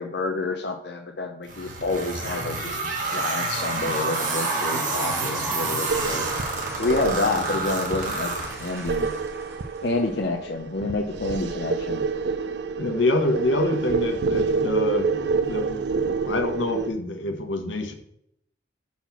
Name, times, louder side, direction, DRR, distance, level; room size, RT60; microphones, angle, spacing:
voice 1, 0.0-2.8 3.1-6.3 6.7-8.3 8.6-9.1 9.8-12.0, left 3 dB, 60° left, 2 dB, 0.7 m, -28 dB
sound 1, 1.5-9.0, right 3 dB, 45° right, 1.4 m, -29 dB
sound 2, 3.6-9.9, right 2 dB, 15° right, 1.2 m, -34 dB
sound 3, 5.9-16.9, right 4 dB, 65° right, 0.5 m, -28 dB
voice 2, 12.8-15.8 16.2-17.9, left 2 dB, 85° left, 5 dB, 1.2 m, -26 dB
5.9 x 4.3 x 5.9 m, 0.71 s
head